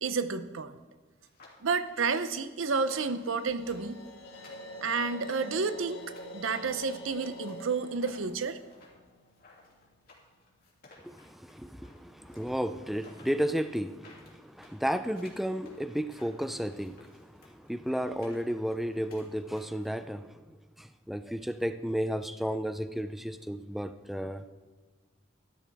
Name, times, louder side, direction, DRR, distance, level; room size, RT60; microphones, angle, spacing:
voice 1, 0.0-0.8 1.6-4.0 4.8-6.0 6.3-8.6, right 4 dB, 85° right, 0.7 m, -30 dB
sound 1, 1.2-6.3 6.6-19.9, left 3 dB, 50° left, 2.7 m, -57 dB
sound 2, 2.8-9.9, equal, 70° left, 1.7 m, -46 dB
voice 2, 11.0-24.4, equal, ahead, 0.3 m, -33 dB
13.5 x 12.0 x 3.5 m
head